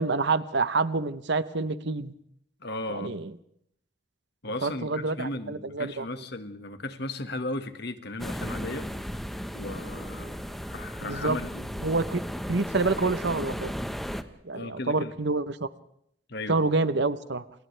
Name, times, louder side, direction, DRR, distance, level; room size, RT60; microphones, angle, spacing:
voice 1, 0.0-2.1 2.9-3.3 4.6-6.1 11.0-11.4 11.8-12.2 12.5-13.7 14.4-15.7 16.5-17.4, right 3 dB, 60° right, 14 dB, 0.9 m, -27 dB
voice 2, 2.6-3.2 4.4-8.9 9.5-11.8 14.5-15.1 16.3-16.6, left 2 dB, 55° left, 8 dB, 1.8 m, -36 dB
sound 1, 8.2-14.2, equal, ahead, 1.2 m, -35 dB
29.5 x 28.5 x 3.4 m, 0.71 s
head